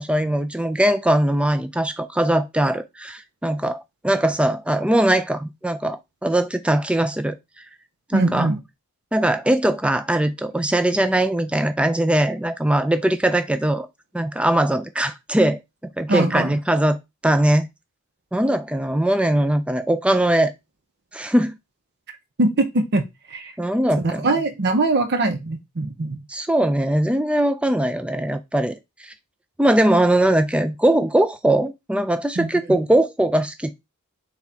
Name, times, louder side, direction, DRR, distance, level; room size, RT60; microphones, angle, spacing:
voice 1, 0.0-7.3 8.1-8.5 9.1-13.9 14.1-15.6 16.0-17.0 17.2-17.7 18.3-20.5 21.1-21.6 23.6-24.3 26.3-28.8 29.0-29.1 29.6-33.7, right 1 dB, 5° right, 0.4 m, -20 dB
voice 2, 8.1-8.6 16.1-16.5 22.4-23.5 24.0-26.2 32.4-32.8, right 2 dB, 50° right, 0.6 m, -22 dB
4.2 x 3.5 x 3.5 m
head